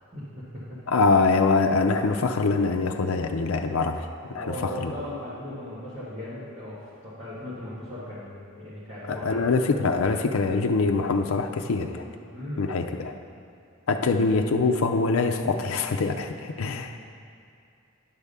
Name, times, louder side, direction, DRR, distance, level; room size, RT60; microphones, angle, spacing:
voice 1, 0.1-0.8 4.3-9.4 12.3-12.7, left 1 dB, 30° right, -13 dB, 1.6 m, -37 dB
voice 2, 0.9-4.5 4.8-4.9 9.1-12.0 12.6-13.1 13.9-17.0, left 4 dB, 85° left, 4 dB, 0.5 m, -24 dB
10.5 x 3.6 x 6.7 m, 2.5 s
head